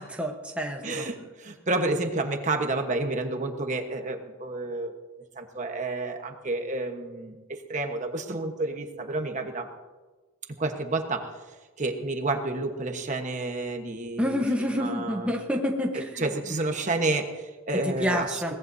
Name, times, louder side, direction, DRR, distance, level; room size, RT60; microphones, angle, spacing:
voice 1, 0.0-1.1 14.2-16.3 17.7-18.5, equal, 5° right, 1 dB, 1.1 m, -28 dB
voice 2, 0.8-4.9 5.3-9.7 10.6-11.3 11.8-14.3 14.6-15.3 16.2-18.5, right 2 dB, 35° right, 5 dB, 1.2 m, -30 dB
22.5 x 18.5 x 2.7 m, 1.3 s
head